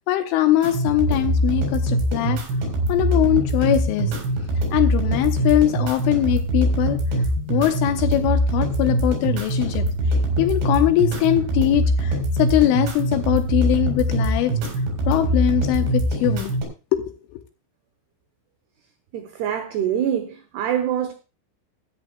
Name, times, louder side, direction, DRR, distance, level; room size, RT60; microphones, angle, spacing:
voice 1, 0.1-2.4 2.9-4.1 4.7-7.0 7.5-9.8 10.4-14.5 15.1-16.5 16.9-17.4, left 13 dB, 80° left, 3.1 m, -21 dB
sound 1, 0.6-16.6, right 1 dB, 60° right, 5.9 m, -23 dB
voice 2, 19.1-21.1, right 9 dB, 75° right, 2.4 m, -25 dB
17.0 x 13.5 x 2.2 m
omnidirectional pair, 5.9 m